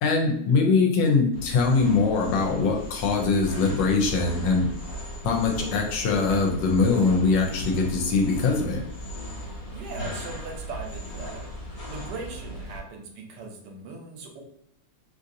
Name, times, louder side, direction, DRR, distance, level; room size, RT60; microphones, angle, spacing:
voice 1, 0.0-4.7 5.2-8.8, left 4 dB, 90° left, 1 dB, 1.3 m, -22 dB
sound 1, 1.3-12.8, equal, 60° left, 1.1 m, -37 dB
voice 2, 9.7-11.4 11.9-14.4, right 3 dB, 75° right, 2 dB, 1.2 m, -39 dB
3.1 x 2.7 x 2.5 m, 0.72 s
omnidirectional pair, 2.0 m